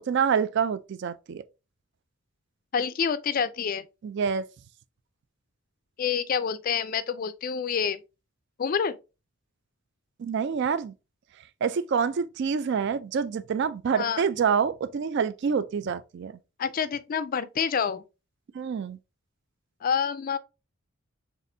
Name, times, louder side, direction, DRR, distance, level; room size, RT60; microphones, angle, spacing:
voice 1, 0.1-1.4 4.0-4.4 10.2-10.9 11.6-16.3 18.5-19.0, right 6 dB, 55° right, 0.3 m, -27 dB
voice 2, 2.7-3.8 6.0-8.0 8.6-9.0 13.9-14.2 16.6-18.0 19.8-20.4, left 7 dB, 40° left, 0.3 m, -27 dB
4.1 x 3.5 x 2.6 m
head